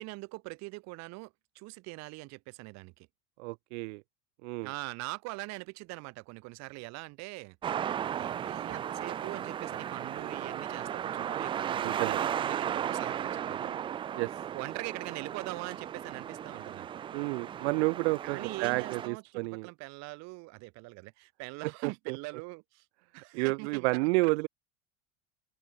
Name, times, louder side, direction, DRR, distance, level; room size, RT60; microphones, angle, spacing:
voice 1, 0.0-3.1 4.6-7.6 8.1-13.8 14.5-16.9 18.2-22.9 23.1-24.3, right 25 dB, 45° right, 2.0 m, -42 dB
voice 2, 3.4-4.0 4.4-4.7 11.8-12.2 14.1-14.3 17.1-19.7 21.8-22.2 23.4-24.5, right 27 dB, 65° right, 0.6 m, -30 dB
sound 1, 7.6-19.1, right 9 dB, 15° right, 0.4 m, -35 dB
open air
supercardioid pair, 160°, 36 cm